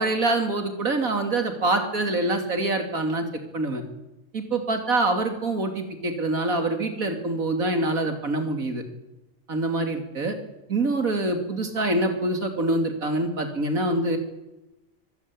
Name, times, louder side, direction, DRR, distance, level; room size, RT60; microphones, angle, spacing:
voice 1, 0.0-3.3 3.5-3.8 4.3-8.8 9.5-10.4 10.7-14.2, right 2 dB, 80° right, 6 dB, 3.3 m, -25 dB
23.5 x 14.5 x 8.7 m, 0.97 s
omnidirectional pair, 1.4 m